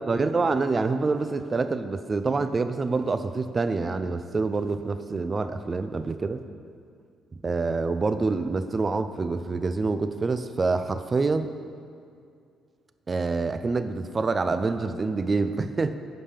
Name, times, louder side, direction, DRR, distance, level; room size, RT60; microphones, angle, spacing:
voice 1, 0.0-6.4 7.4-11.5 13.1-15.9, right 3 dB, 30° right, 10 dB, 0.5 m, -26 dB
9.8 x 5.2 x 5.1 m, 2.3 s
cardioid pair, 100°, 0 cm